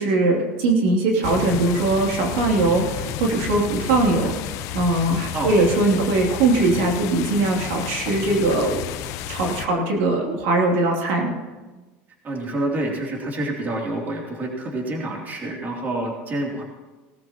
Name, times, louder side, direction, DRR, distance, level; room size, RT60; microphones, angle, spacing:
voice 1, 0.0-9.0 9.3-11.4, right 2 dB, 80° right, 0 dB, 2.8 m, -21 dB
sound 1, 1.2-9.7, left 10 dB, 60° left, 0.9 m, -32 dB
voice 2, 12.2-16.6, right 1 dB, 30° right, -1 dB, 3.0 m, -27 dB
18.5 x 13.5 x 3.0 m, 1.2 s
supercardioid pair, 130°, 6 cm